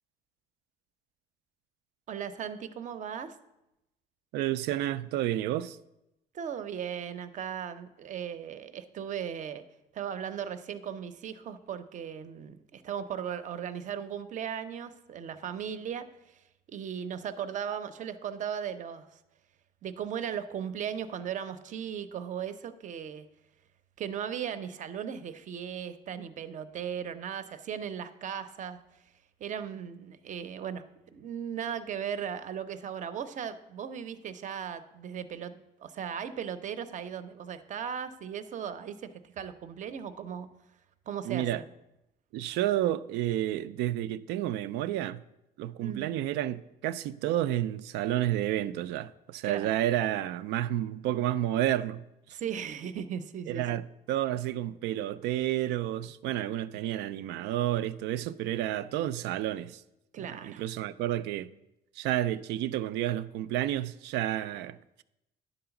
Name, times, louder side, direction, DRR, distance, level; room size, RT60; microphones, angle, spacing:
voice 1, 2.1-3.3 6.3-9.6 9.9-16.4 16.7-19.2 19.8-23.3 24.0-28.8 29.4-30.8 31.1-39.1 39.4-40.5 41.1-41.6 45.8-46.2 49.4-49.8 52.3-53.8 60.1-60.6, right 8 dB, 50° right, 0.6 m, -37 dB
voice 2, 4.3-5.8 41.2-41.6 42.3-45.2 45.6-52.1 53.5-59.8 60.3-61.5 62.0-65.0, right 13 dB, 85° right, 0.4 m, -30 dB
10.0 x 3.9 x 7.0 m
cardioid pair, 110°, 17 cm